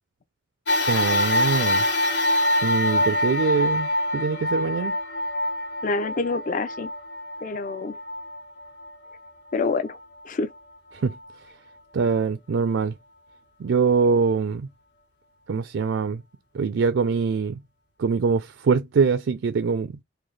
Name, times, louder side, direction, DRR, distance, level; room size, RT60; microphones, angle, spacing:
sound 1, 0.7-9.3 9.9-10.0 11.1-11.2, left 1 dB, 60° left, 1.0 m, -25 dB
voice 1, 0.9-1.8 2.6-4.9 10.9-11.2 11.9-12.9 13.6-14.7 15.5-16.2 16.5-17.6 18.0-19.9, right 5 dB, 70° right, 0.4 m, -23 dB
voice 2, 5.8-6.9 7.4-8.0 9.5-10.0 10.2-10.5, left 3 dB, 40° left, 0.4 m, -26 dB
3.9 x 2.6 x 3.2 m
head